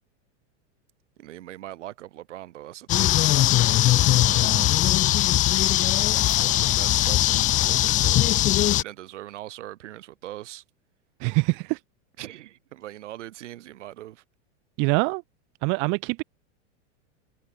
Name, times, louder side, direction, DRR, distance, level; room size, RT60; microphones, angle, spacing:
voice 1, 1.2-3.2 6.4-8.5 8.8-10.6 12.2-14.2, right 14 dB, 80° right, 5.8 m, -41 dB
sound 1, 2.9-8.8, left 15 dB, 20° left, 0.5 m, -20 dB
voice 2, 3.9-4.7 11.2-11.8 14.8-15.2 15.6-16.2, right 33 dB, 30° right, 0.4 m, -26 dB
supercardioid pair, 140°, 36 cm